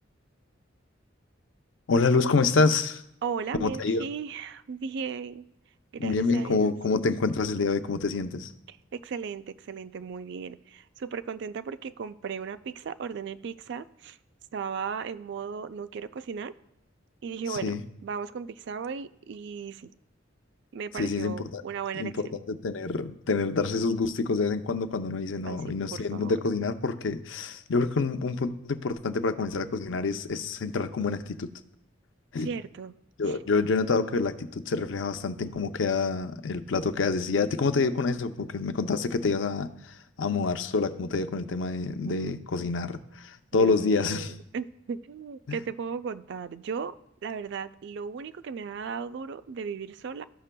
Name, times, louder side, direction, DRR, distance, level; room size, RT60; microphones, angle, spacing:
voice 1, 1.9-3.0 3.6-4.0 6.0-8.5 17.5-17.8 20.9-21.6 21.9-31.5 32.3-32.5 33.2-44.3 45.5-45.6, left 4 dB, 75° left, 9 dB, 0.5 m, -27 dB
voice 2, 3.2-5.4 5.9-6.8 8.7-14.2 14.5-16.5 17.2-17.7 18.0-19.9 20.7-22.1 25.4-26.4 32.4-32.9 33.3-33.4 42.1-42.4 43.5-47.0 47.2-50.2, right 6 dB, 65° right, 13 dB, 0.4 m, -36 dB
15.0 x 5.8 x 2.2 m, 0.80 s
head